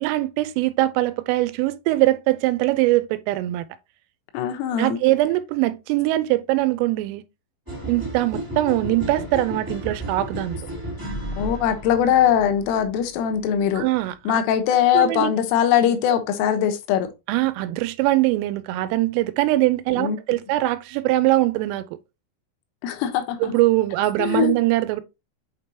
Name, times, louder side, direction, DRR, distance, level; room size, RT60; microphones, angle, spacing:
voice 1, 0.0-3.6 4.8-7.2 7.9-10.6 13.8-14.4 14.9-15.3 17.3-21.9 23.4-25.0, right 17 dB, 90° right, 3.2 m, -22 dB
voice 2, 4.3-5.0 11.4-13.9 14.3-17.1 20.0-20.2 22.8-23.6 24.2-24.5, left 9 dB, 80° left, 3.5 m, -21 dB
sound 1, 7.7-13.6, equal, 15° right, 0.8 m, -33 dB
8.0 x 4.6 x 2.8 m
omnidirectional pair, 5.8 m